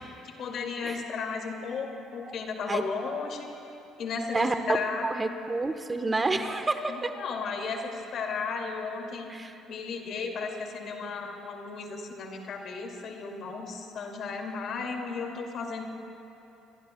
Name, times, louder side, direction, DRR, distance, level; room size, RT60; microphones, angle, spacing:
voice 1, 0.4-3.5 4.0-5.1 6.9-9.3 9.7-15.8, left 5 dB, 60° left, 2 dB, 2.3 m, -34 dB
voice 2, 5.0-7.1 9.3-9.5, right 3 dB, 25° right, 7 dB, 1.1 m, -29 dB
27.0 x 22.0 x 2.3 m, 2.9 s
hypercardioid pair, 65°, 0 cm